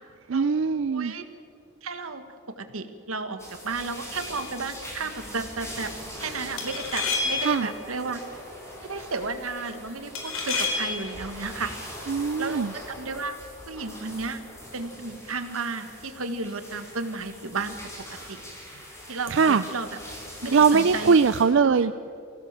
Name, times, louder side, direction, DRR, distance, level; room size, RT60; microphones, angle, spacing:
voice 1, 0.3-1.1 7.4-7.7 12.1-12.7 19.3-19.6 20.5-22.1, right 5 dB, 60° right, 12 dB, 0.4 m, -21 dB
voice 2, 0.8-1.2 1.8-2.2 2.6-5.9 6.2-8.2 8.8-11.7 12.0-13.4 13.7-14.4 14.7-18.4 19.1-19.9 20.4-21.2 21.6-21.8, right 4 dB, 85° right, 9 dB, 1.6 m, -33 dB
sound 1, 3.4-21.4, equal, 15° left, 4.8 m, -42 dB
sound 2, 4.2-4.5 6.6-7.7 10.2-11.1, left 4 dB, 75° left, 4.2 m, -29 dB
25.0 x 17.0 x 7.4 m, 2.5 s
head